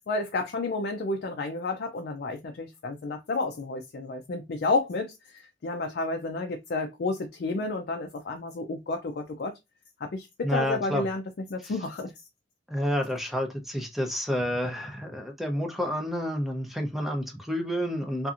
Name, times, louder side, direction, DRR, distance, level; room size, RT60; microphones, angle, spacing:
voice 1, 0.1-9.5 10.0-11.2 11.5-12.1, left 3 dB, 55° left, 0.4 m, -31 dB
voice 2, 10.4-11.1 11.6-11.7 12.7-18.3, equal, ahead, 0.5 m, -29 dB
2.7 x 2.5 x 2.4 m
head